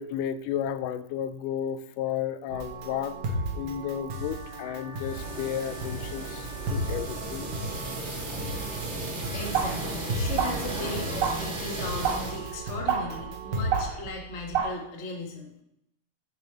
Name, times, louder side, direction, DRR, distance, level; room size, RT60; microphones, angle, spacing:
voice 1, 0.0-7.5 8.3-8.4, left 9 dB, 85° left, 12 dB, 2.1 m, -33 dB
sound 1, 2.5-13.9, right 1 dB, 70° right, 2.5 m, -35 dB
sound 2, 4.9-12.4, right 2 dB, 30° right, 1.4 m, -35 dB
voice 2, 9.3-15.5, left 2 dB, 45° left, 0 dB, 0.8 m, -37 dB
sound 3, 9.5-14.7, right 7 dB, 50° right, 1.9 m, -31 dB
9.7 x 5.1 x 4.5 m, 0.79 s
omnidirectional pair, 3.7 m